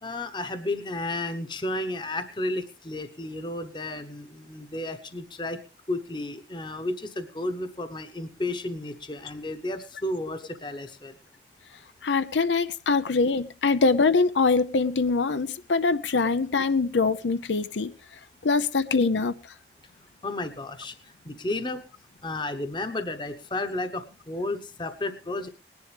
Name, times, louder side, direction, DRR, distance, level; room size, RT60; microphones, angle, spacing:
voice 1, 0.0-5.6 5.9-11.2 20.2-21.8 22.2-25.5, left 2 dB, 25° left, 1.0 m, -32 dB
voice 2, 12.0-17.9 18.4-19.3, left 4 dB, 90° left, 0.6 m, -23 dB
19.5 x 10.5 x 3.3 m
head